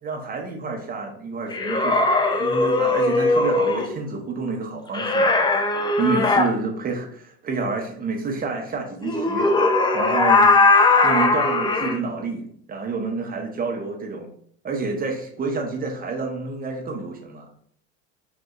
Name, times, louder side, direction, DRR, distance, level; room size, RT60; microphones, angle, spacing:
voice 1, 0.0-5.6 6.0-9.5 9.9-10.5 11.0-14.3 14.6-17.5, right 4 dB, 25° right, 2 dB, 1.0 m, -29 dB
sound 1, 1.5-3.9 4.9-6.5 9.0-12.0, left 3 dB, 15° left, 0.5 m, -19 dB
5.2 x 2.7 x 2.4 m, 0.63 s
hypercardioid pair, 90°, 33 cm